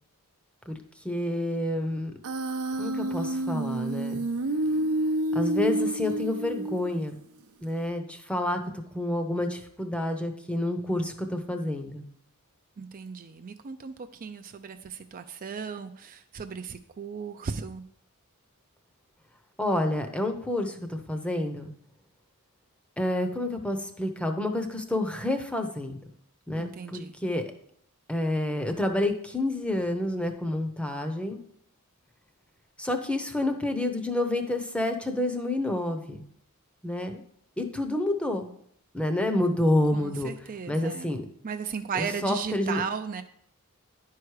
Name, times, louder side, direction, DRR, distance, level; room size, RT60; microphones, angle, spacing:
voice 1, 1.0-2.1 2.8-4.2 5.3-7.2 7.6-8.6 8.9-12.0 19.6-21.7 23.0-26.0 26.5-27.4 28.1-31.4 32.8-36.2 36.8-37.2 37.6-38.5 38.9-40.3 40.7-41.3 41.9-42.8, left 1 dB, 5° left, 5 dB, 0.7 m, -28 dB
Human voice, 2.2-7.2, right 1 dB, 75° right, 0.7 m, -29 dB
voice 2, 12.8-13.9 14.2-17.8 26.6-27.1 39.9-41.1 41.4-43.2, right 6 dB, 40° right, 8 dB, 0.4 m, -36 dB
10.5 x 4.7 x 4.7 m, 0.67 s
head